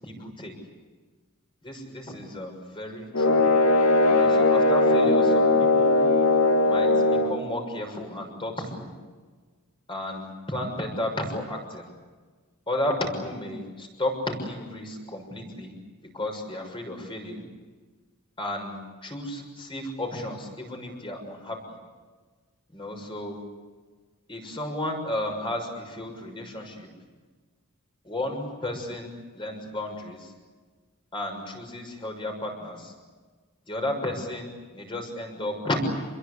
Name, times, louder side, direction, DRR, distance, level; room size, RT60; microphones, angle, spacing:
voice 1, 0.0-0.5 1.6-3.4 4.1-6.0 6.6-8.9 9.9-11.9 12.7-15.7 16.0-17.4 18.4-21.8 22.7-23.4 24.3-26.9 28.0-30.3 31.1-32.9 33.7-35.8, left 1 dB, 25° left, 3 dB, 6.5 m, -33 dB
sound 1, 3.1-7.4, left 2 dB, 85° left, 2.4 m, -19 dB
28.0 x 22.0 x 8.5 m, 1.4 s
head